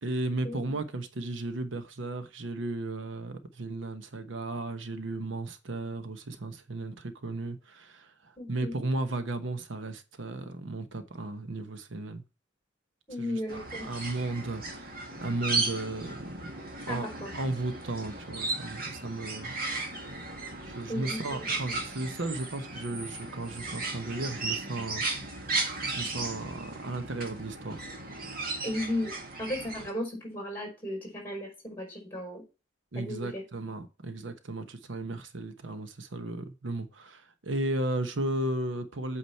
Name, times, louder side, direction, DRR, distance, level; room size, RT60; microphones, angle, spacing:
voice 1, 0.0-12.2 13.2-16.5 16.9-17.1 17.3-19.5 20.6-25.0 25.5-27.9 32.9-39.2, right 2 dB, 80° right, 1.0 m, -35 dB
voice 2, 8.4-8.7 13.1-13.8 16.9-17.3 20.9-21.4 28.6-29.1 29.4-32.4 32.9-33.4, left 1 dB, 10° left, 4.7 m, -35 dB
sound 1, 13.5-29.9, right 3 dB, 50° right, 1.9 m, -36 dB
8.4 x 5.0 x 4.5 m
head